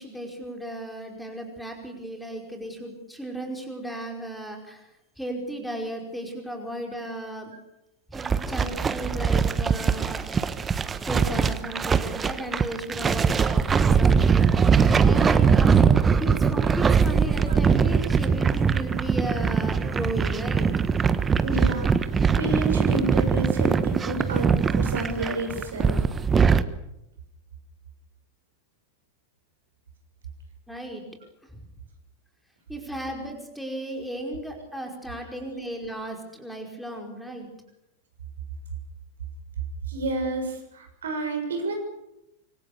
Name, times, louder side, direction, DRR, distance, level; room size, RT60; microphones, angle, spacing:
voice 1, 0.0-4.9 5.2-7.5 8.1-10.3 11.1-15.9 16.2-20.7 30.7-31.0 31.5-31.6 32.7-37.5, right 1 dB, ahead, 2 dB, 5.2 m, -35 dB
sound 1, 8.1-26.6, right 6 dB, 20° right, 1.3 m, -22 dB
voice 2, 21.4-26.0 39.9-41.8, right 2 dB, 65° right, 5 dB, 6.8 m, -30 dB
26.0 x 24.0 x 6.9 m, 0.88 s
figure-of-eight pair, 90°, 0 cm